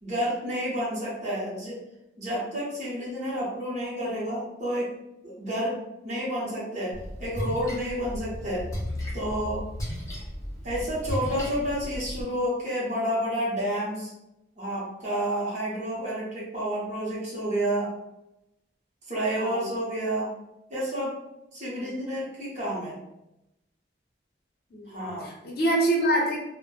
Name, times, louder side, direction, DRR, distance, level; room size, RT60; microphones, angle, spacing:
voice 1, 0.0-1.8 2.2-4.9 5.2-5.8 6.0-6.9 7.2-8.6 9.1-9.6 10.6-14.1 14.6-17.9 19.1-20.3 20.7-21.2 21.5-23.0 24.9-25.3, equal, 40° right, -6 dB, 0.7 m, -30 dB
Splash splatter, 6.9-12.2, equal, 15° left, 0.6 m, -35 dB
voice 2, 19.4-19.7 21.8-21.9 24.7-26.4, right 1 dB, 55° left, -2 dB, 0.7 m, -26 dB
2.1 x 2.1 x 3.0 m, 0.89 s
head